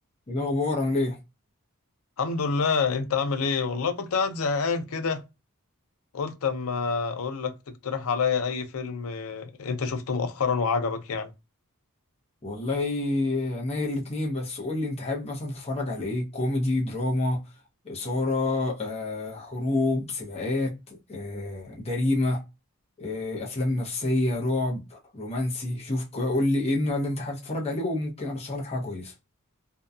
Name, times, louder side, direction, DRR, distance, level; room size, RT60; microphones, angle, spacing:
voice 1, 0.3-1.2 12.4-17.4 17.8-22.4 23.0-29.1, left 2 dB, 30° left, 0.7 m, -28 dB
voice 2, 2.2-5.2 6.1-7.5 7.8-11.3, left 5 dB, 70° left, 0.5 m, -27 dB
2.7 x 2.2 x 2.3 m
head